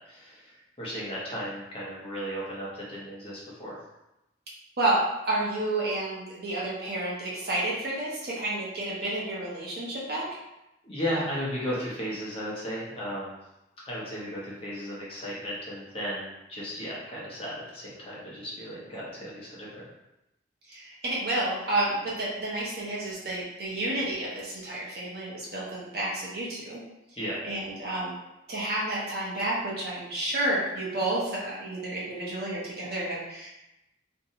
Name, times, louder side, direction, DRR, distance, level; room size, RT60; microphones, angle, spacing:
voice 1, 0.1-3.8 10.8-13.3 13.8-19.8 27.2-27.4, equal, 30° left, -6 dB, 0.7 m, -35 dB
voice 2, 5.2-10.2 18.9-19.0 20.7-26.8 27.4-28.2 28.5-33.5, right 2 dB, 55° right, -6 dB, 0.7 m, -30 dB
2.6 x 2.2 x 2.7 m, 0.91 s
head